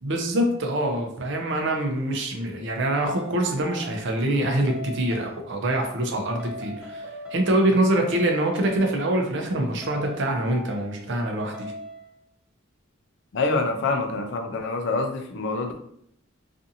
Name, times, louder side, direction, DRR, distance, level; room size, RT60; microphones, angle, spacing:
voice 1, 0.0-7.0 7.3-11.7, right 1 dB, 60° right, 2 dB, 0.6 m, -25 dB
sound 1, 2.0-2.1 3.0-4.2 4.7-5.4 6.4-7.8 8.1-9.0 9.8-11.0 11.5-12.1, equal, 5° right, 0.4 m, -40 dB
voice 2, 13.3-15.8, left 3 dB, 60° left, 5 dB, 0.4 m, -26 dB
2.5 x 2.5 x 2.7 m, 0.70 s
head